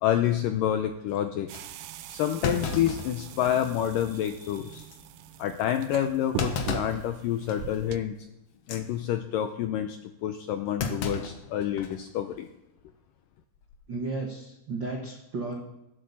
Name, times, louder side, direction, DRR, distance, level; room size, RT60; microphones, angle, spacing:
voice 1, 0.0-1.5 2.1-4.9 5.4-8.1 8.7-12.5, left 11 dB, 85° left, 7 dB, 2.0 m, -28 dB
Thump thud, 0.9-1.0 1.5-1.6 2.4-3.8 4.2-4.3 4.7-5.0 6.4-7.0 7.5-7.8 8.5-8.8 10.8-12.0 12.3-12.4 13.6-13.9, left 4 dB, 65° left, 1.6 m, -33 dB
sound 1, 1.5-8.0, right 12 dB, 85° right, 1.9 m, -41 dB
voice 2, 13.9-15.5, right 3 dB, 65° right, 0 dB, 1.1 m, -33 dB
18.5 x 8.1 x 7.1 m, 0.91 s
omnidirectional pair, 4.7 m